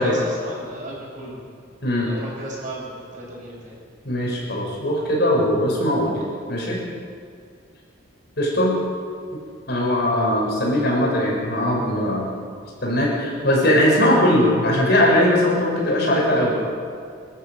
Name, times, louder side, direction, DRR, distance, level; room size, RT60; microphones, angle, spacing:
voice 1, 0.0-1.4 2.1-3.8, right 1 dB, 40° right, -4 dB, 7.8 m, -34 dB
voice 2, 4.0-6.2 6.5-6.8 8.4-8.7 9.3-9.4 9.7-12.3 12.8-16.6, left 1 dB, 55° left, -3 dB, 7.0 m, -20 dB
27.5 x 13.5 x 8.3 m, 2.2 s
head